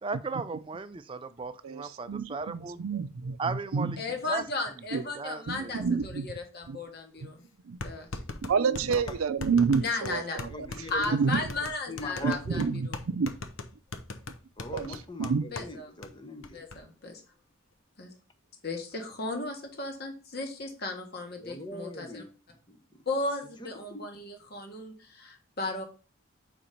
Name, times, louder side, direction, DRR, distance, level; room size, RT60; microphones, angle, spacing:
voice 1, 0.0-2.8 3.4-4.0 4.3-4.4 5.1-5.9, right 4 dB, 25° right, 0.4 m, -36 dB
voice 2, 1.6-4.0 4.9-5.0 5.5-6.3 6.7-6.8 7.2-7.3 7.6-7.8 8.4-10.7 11.1-11.4 12.2-12.9 13.1-13.3 14.7-14.9 15.2-15.5, right 5 dB, 85° right, 0.5 m, -28 dB
voice 3, 4.0-7.4 7.8-8.1 9.8-10.4 10.9-12.9 15.5-15.9 16.5-17.2 18.0-18.1 18.6-22.2 23.0-25.8, left 2 dB, 50° left, 1.4 m, -35 dB
sound 1, 6.9-7.0 7.8-15.7 16.0-16.1 16.4-16.8, left 3 dB, 70° left, 0.7 m, -39 dB
voice 4, 10.5-11.2 11.6-12.7 14.6-16.6 21.4-23.0 23.6-23.7, left 1 dB, 20° left, 0.7 m, -41 dB
5.0 x 4.4 x 5.2 m
head